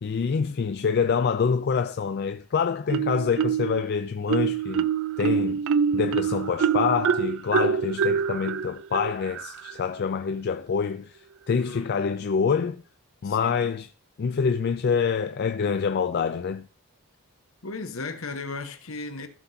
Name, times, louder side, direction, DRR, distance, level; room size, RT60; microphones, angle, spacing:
voice 1, 0.0-4.9 5.2-5.6 5.9-12.8 13.2-13.9 14.2-16.7, left 6 dB, 45° left, 0.4 m, -26 dB
Marimba xylophone, 2.9-3.8 4.3-9.8, right 7 dB, 60° right, 0.3 m, -25 dB
voice 2, 11.6-12.1 13.2-13.7 17.6-19.3, left 3 dB, 65° left, 1.1 m, -36 dB
15.0 x 6.0 x 2.7 m
head